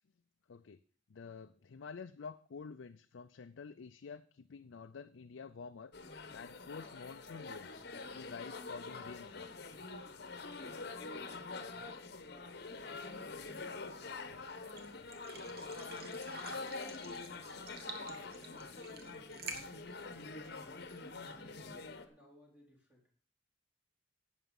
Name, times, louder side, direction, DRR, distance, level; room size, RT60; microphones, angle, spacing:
voice 1, 0.5-0.8 1.1-7.9 8.1-9.5, left 5 dB, 75° left, 8 dB, 0.5 m, -49 dB
sound 1, 5.9-22.1, left 3 dB, 55° left, 1.1 m, -45 dB
sound 2, 12.6-21.1, right 4 dB, 50° right, 1.5 m, -52 dB
voice 2, 18.3-21.7 22.0-23.1, equal, 10° right, -2 dB, 3.9 m, -63 dB
11.5 x 8.2 x 5.4 m, 0.43 s
head